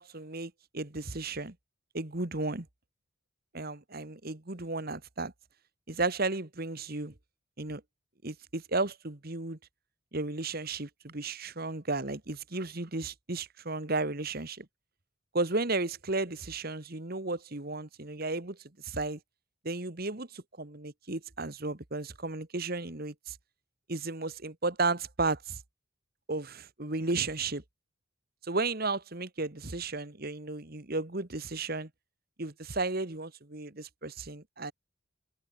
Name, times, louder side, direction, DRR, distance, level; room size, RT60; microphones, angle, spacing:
voice 1, 0.0-1.5 1.9-2.7 3.5-5.3 5.9-7.1 7.6-7.8 8.2-9.6 10.1-14.7 15.3-18.6 18.8-19.2 19.6-23.4 23.9-25.6 26.3-27.6 28.4-31.9 32.4-34.7, right 3 dB, 45° right, 1.6 m, -34 dB
open air
head